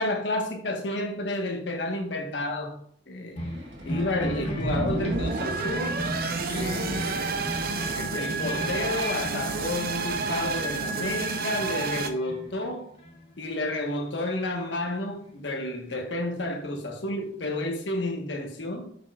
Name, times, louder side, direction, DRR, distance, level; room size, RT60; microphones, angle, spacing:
voice 1, 0.0-2.8 3.1-3.4 3.8-6.1 6.5-7.5 8.0-12.9 13.4-18.9, left 1 dB, 70° left, 1.2 m, -31 dB
sound 1, 3.3-10.7 11.1-12.7 13.0-13.5 14.3-14.4, left 1 dB, 35° left, 1.4 m, -36 dB
sound 2, 3.3-11.4, right 1 dB, 80° right, 1.5 m, -42 dB
sound 3, 4.6-12.1, right 4 dB, 55° right, 0.6 m, -30 dB
7.4 x 7.2 x 2.4 m
head